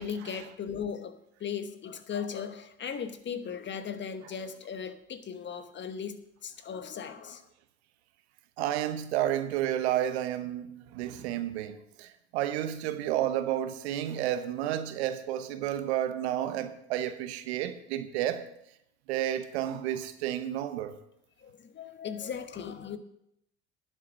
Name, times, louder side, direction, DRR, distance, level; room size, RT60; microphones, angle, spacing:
voice 1, 0.0-7.4 21.4-23.0, left 7 dB, 35° left, 1.1 m, -37 dB
voice 2, 8.6-18.5 19.1-21.0, right 12 dB, 75° right, 1.0 m, -31 dB
11.0 x 7.3 x 6.2 m
hypercardioid pair, 70°, 33 cm